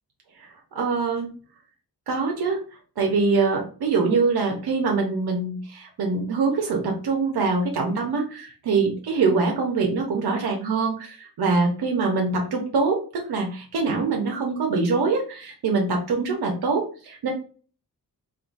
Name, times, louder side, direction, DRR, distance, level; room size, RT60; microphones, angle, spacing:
voice 1, 0.7-1.3 2.1-2.6 3.0-17.3, right 4 dB, 85° right, 1 dB, 0.8 m, -24 dB
3.8 x 2.5 x 2.5 m, 0.38 s
wide cardioid pair, 140°, 37 cm